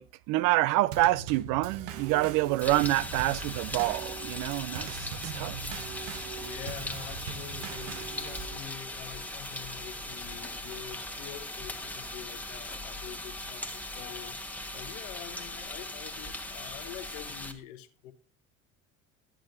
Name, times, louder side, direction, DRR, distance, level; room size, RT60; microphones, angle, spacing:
voice 1, 0.0-5.6, right 17 dB, 55° right, 0.5 m, -27 dB
Drum kit / Snare drum / Bass drum, 0.9-8.6, right 7 dB, 75° right, 1.0 m, -41 dB
sound 1, 2.6-17.5, left 1 dB, 5° left, 1.4 m, -39 dB
sound 2, 5.5-12.7, right 3 dB, 40° right, 4.0 m, -57 dB
voice 2, 6.4-18.1, left 12 dB, 75° left, 1.0 m, -45 dB
13.0 x 8.8 x 2.6 m
hypercardioid pair, 70°, 39 cm